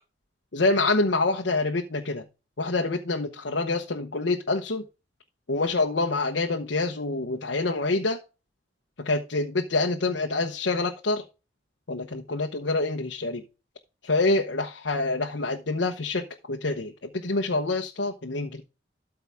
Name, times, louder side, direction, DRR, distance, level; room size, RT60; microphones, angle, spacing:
voice 1, 0.5-2.2 2.6-4.8 5.5-8.2 9.0-11.2 11.9-13.4 14.0-18.6, left 3 dB, 85° left, 3 dB, 1.0 m, -26 dB
13.0 x 4.8 x 3.5 m, 0.29 s
head